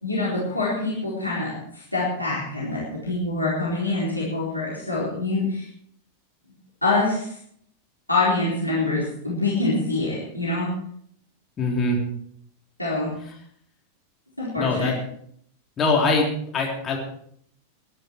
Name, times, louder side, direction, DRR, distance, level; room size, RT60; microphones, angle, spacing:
voice 1, 0.0-5.7 6.8-7.3 8.1-10.7 12.8-13.1 14.4-14.9, left 2 dB, 85° left, -7 dB, 4.2 m, -25 dB
voice 2, 11.6-12.0 14.6-14.9 15.8-16.3 16.5-17.0, left 3 dB, 25° left, -1 dB, 3.6 m, -22 dB
21.0 x 10.5 x 4.6 m, 0.66 s
figure-of-eight pair, 90°, 0 cm